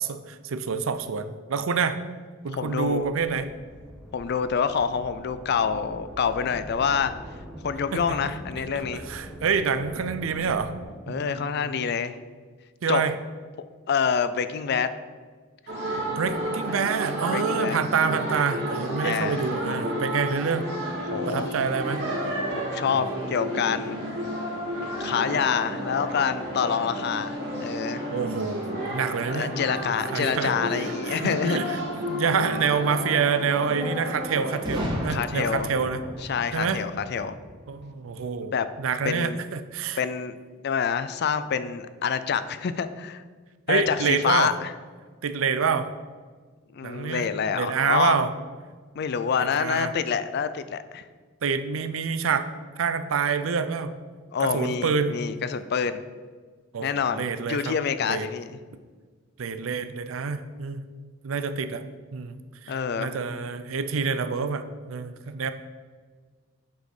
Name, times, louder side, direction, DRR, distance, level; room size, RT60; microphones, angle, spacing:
voice 1, 0.0-2.0 2.4-3.5 7.9-8.6 8.9-10.7 11.1-11.7 12.8-13.1 16.1-20.7 21.3-22.1 28.1-29.6 30.1-36.0 36.5-36.8 37.7-40.0 43.7-44.5 45.2-45.9 46.8-47.3 47.5-48.3 49.5-49.9 51.4-52.5 52.8-54.0 54.4-55.2 56.7-57.8 58.0-58.3 59.4-60.9 61.2-62.4 62.6-65.5, right 5 dB, 85° right, 10 dB, 0.5 m, -27 dB
voice 2, 2.5-3.1 4.1-7.1 7.6-9.0 11.1-12.2 12.9-13.0 13.9-14.9 17.3-17.8 19.0-19.4 21.1-21.6 22.5-24.0 25.0-28.0 29.3-31.6 35.1-35.7 36.3-37.4 38.5-38.7 39.0-39.4 39.9-40.4 40.6-43.2 43.7-44.7 46.7-48.2 48.9-51.0 54.3-56.0 56.8-58.6 62.7-63.1, left 6 dB, 55° left, 12 dB, 0.4 m, -27 dB
sound 1, 2.9-10.8, equal, 5° right, 1.1 m, -43 dB
sound 2, 15.7-34.6, equal, 55° right, 2.2 m, -31 dB
Boom, 34.6-38.5, equal, 25° right, 1.5 m, -34 dB
8.1 x 4.3 x 4.9 m, 1.5 s
head